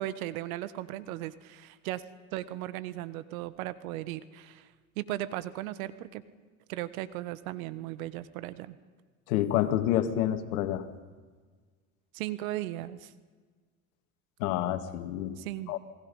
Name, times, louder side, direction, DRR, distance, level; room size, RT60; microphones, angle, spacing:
voice 1, 0.0-2.0 2.3-6.2 6.7-8.8 12.1-13.1 15.4-15.7, right 14 dB, 75° right, 15 dB, 1.4 m, -37 dB
voice 2, 9.3-10.9 14.4-15.4 15.7-15.8, left 12 dB, 80° left, 10 dB, 2.0 m, -28 dB
28.0 x 19.5 x 5.5 m, 1.5 s
hypercardioid pair, 85°, 42 cm